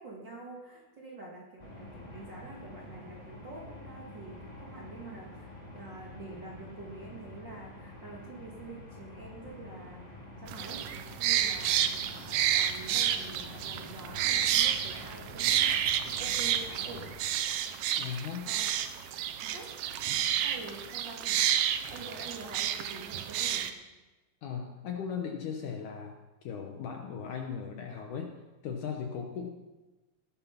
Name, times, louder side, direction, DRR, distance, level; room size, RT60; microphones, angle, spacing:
voice 1, 0.0-10.9 11.2-17.1 18.2-18.7 19.4-20.1 20.4-21.5 21.9-23.7, right 3 dB, 40° right, -2 dB, 1.8 m, -47 dB
sound 1, 1.6-17.1, left 1 dB, 15° left, 1.5 m, -47 dB
sound 2, 10.5-23.7, right 10 dB, 75° right, 2.2 m, -30 dB
voice 2, 18.0-18.5 24.4-26.2 26.4-28.4 28.6-29.5, left 7 dB, 70° left, 3 dB, 2.1 m, -37 dB
18.0 x 8.1 x 5.8 m, 1.2 s
omnidirectional pair, 4.5 m